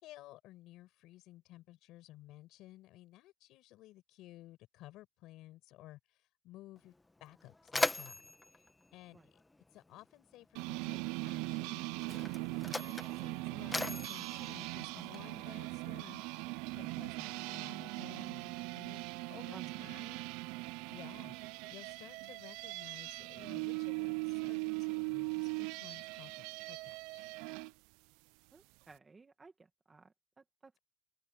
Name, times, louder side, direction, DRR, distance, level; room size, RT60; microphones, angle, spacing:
voice 1, 0.0-6.2 6.4-6.9 7.2-8.2 8.9-9.2 9.7-16.2 16.7-20.4 20.9-21.4 21.7-26.4 26.7-27.3, left 16 dB, 45° left, 5.9 m, -55 dB
Mechanisms, 6.8-6.9 7.2-9.9 10.9-11.1 11.9-15.5, left 2 dB, 5° left, 1.1 m, -39 dB
sound 1, 10.6-27.7, right 26 dB, 60° right, 0.4 m, -40 dB
voice 2, 19.5-19.9 28.5-30.8, right 3 dB, 15° right, 2.0 m, -57 dB
open air
cardioid pair, 165°, 0 cm